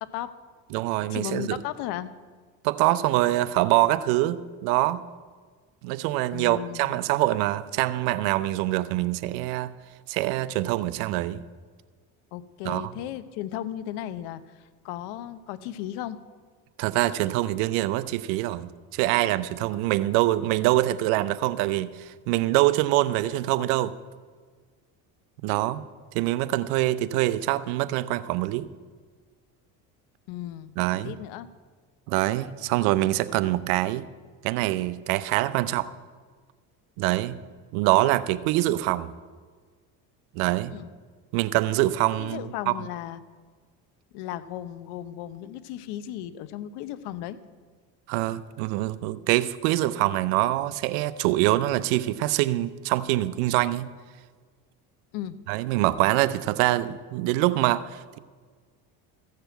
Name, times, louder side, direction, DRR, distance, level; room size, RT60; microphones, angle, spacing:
voice 1, 0.0-0.3 1.1-2.2 6.3-7.0 12.3-16.2 30.3-31.5 40.7-40.9 42.2-43.2 44.1-47.4 55.1-55.4, left 12 dB, 75° left, 13 dB, 0.9 m, -35 dB
voice 2, 0.7-1.6 2.6-5.0 5.8-9.7 10.1-11.4 12.6-12.9 16.8-23.9 25.4-25.8 26.1-28.7 30.8-31.1 32.1-34.0 34.4-35.9 37.0-37.4 37.7-39.1 40.3-40.8 41.3-42.7 48.1-53.9 55.5-58.2, right 16 dB, 80° right, 15 dB, 0.7 m, -24 dB
15.0 x 6.8 x 7.9 m, 1.5 s
supercardioid pair, 90°, 40 cm